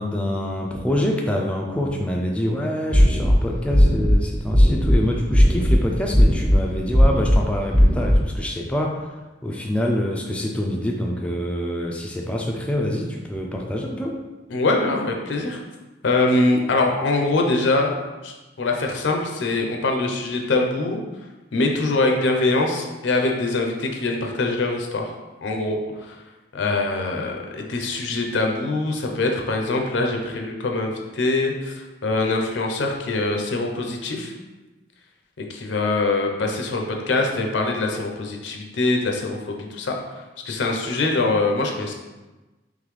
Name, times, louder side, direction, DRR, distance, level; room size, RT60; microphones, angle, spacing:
voice 1, 0.0-9.1 9.4-14.2, left 1 dB, 5° left, 0 dB, 0.3 m, -26 dB
sound 1, 2.9-3.3 3.7-4.1 4.5-4.9 5.3-5.8 6.1-6.6 6.9-7.4 7.7-8.2, equal, 20° right, 0.7 m, -15 dB
voice 2, 14.5-15.6 16.0-17.9 18.2-21.0 21.5-25.1 25.4-26.1 26.5-34.3 35.4-41.9, left 2 dB, 85° left, 2 dB, 0.6 m, -23 dB
3.8 x 3.2 x 3.1 m, 1.2 s
head